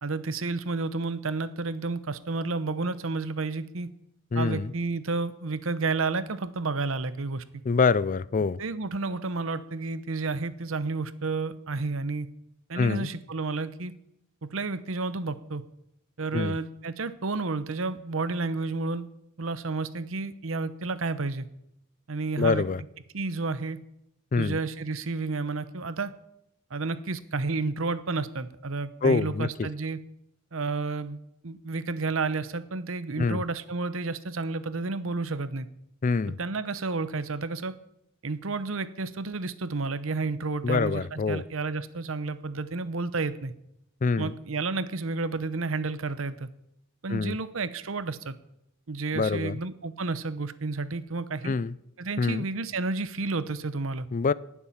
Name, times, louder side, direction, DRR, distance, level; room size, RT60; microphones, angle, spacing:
voice 1, 0.0-3.9 4.3-7.6 8.6-12.3 12.7-13.9 14.4-15.6 16.2-19.1 19.4-21.5 22.1-22.7 23.1-23.8 24.4-26.1 26.7-30.0 30.5-31.2 31.4-35.7 36.3-37.8 38.2-43.5 44.2-46.5 47.0-48.3 48.9-51.5 52.0-54.1, right 3 dB, 70° right, 0.9 m, -31 dB
voice 2, 4.3-4.7 7.6-8.6 12.7-13.1 16.3-16.6 22.4-22.8 24.3-24.6 29.0-29.7 33.2-33.4 36.0-36.4 40.6-41.4 44.0-44.3 47.1-47.4 49.1-49.6 51.4-51.8 52.2-52.5 54.1-54.3, left 4 dB, 40° left, 0.4 m, -25 dB
18.5 x 7.2 x 7.3 m
head